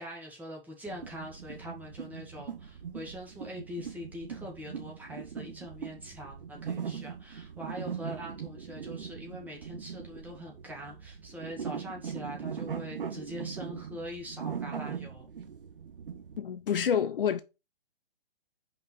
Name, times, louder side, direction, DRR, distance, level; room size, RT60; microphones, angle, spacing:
voice 1, 0.0-15.3, equal, 5° right, 2.1 m, -43 dB
sound 1, 0.9-16.4, right 7 dB, 65° right, 1.6 m, -40 dB
voice 2, 16.4-17.4, left 8 dB, 65° left, 0.9 m, -28 dB
5.3 x 5.2 x 6.3 m
hypercardioid pair, 140°, 30 cm